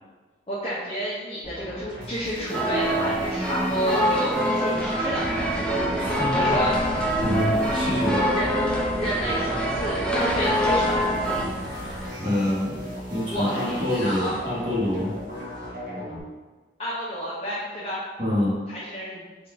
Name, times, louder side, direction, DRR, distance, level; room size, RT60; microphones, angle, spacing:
voice 1, 0.5-5.4 6.3-6.7 8.3-8.5 9.0-11.0 13.3-14.3 16.8-18.0 18.7-19.2, equal, 35° left, -10 dB, 0.8 m, -30 dB
sound 1, 1.4-16.2, equal, 50° right, 1.0 m, -36 dB
sound 2, 2.5-11.5, equal, 5° left, 0.5 m, -25 dB
sound 3, 5.1-12.1, equal, 65° right, 0.6 m, -37 dB
voice 2, 5.9-6.9 7.2-8.3 12.2-12.8 13.1-15.1 18.2-18.6, left 1 dB, 30° right, -8 dB, 1.1 m, -26 dB
3.6 x 2.6 x 4.3 m, 1.3 s
head